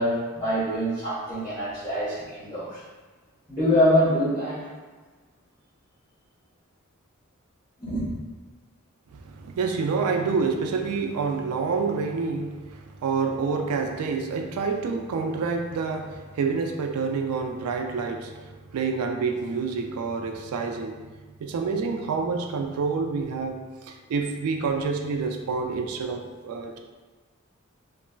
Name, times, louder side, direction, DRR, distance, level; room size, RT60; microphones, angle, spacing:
voice 1, 0.0-2.8 3.5-4.6 7.8-8.1, equal, 15° left, -17 dB, 1.1 m, -24 dB
voice 2, 9.1-21.0 21.4-26.8, right 4 dB, 85° right, 4 dB, 0.3 m, -28 dB
2.9 x 2.3 x 2.3 m, 1.3 s
head